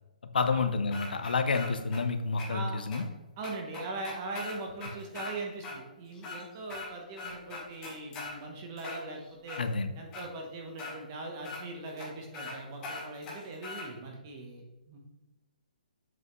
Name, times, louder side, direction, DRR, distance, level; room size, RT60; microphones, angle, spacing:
voice 1, 0.3-3.1 9.6-9.9, left 4 dB, 90° left, 8 dB, 0.9 m, -29 dB
sound 1, 0.9-2.0 2.4-2.5 2.9-3.0 3.4-5.3 5.6-5.8 6.1-6.9 7.2-8.3 8.8-9.6 10.1-10.2 10.8-10.9 11.4-11.6 12.0-12.1 12.3-12.5 12.8-13.9, left 3 dB, 15° left, 1.4 m, -41 dB
voice 2, 2.5-2.8 3.4-9.6 9.9-15.0, right 2 dB, 20° right, 1 dB, 1.0 m, -40 dB
7.6 x 5.5 x 3.1 m, 1.0 s
hypercardioid pair, 175°, 5 cm